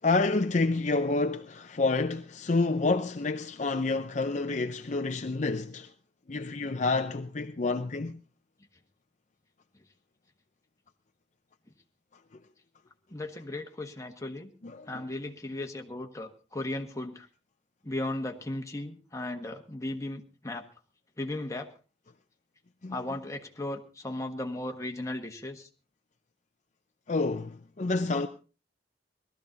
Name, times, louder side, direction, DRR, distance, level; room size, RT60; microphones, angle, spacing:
voice 1, 0.0-5.9 6.3-8.2 14.6-14.9 22.8-23.0 27.1-28.3, left 3 dB, 45° left, 0.6 m, -28 dB
voice 2, 13.1-14.5 14.9-17.3 17.8-20.6 21.2-21.7 22.9-25.7, left 1 dB, 20° left, 1.4 m, -36 dB
19.0 x 13.0 x 4.0 m
head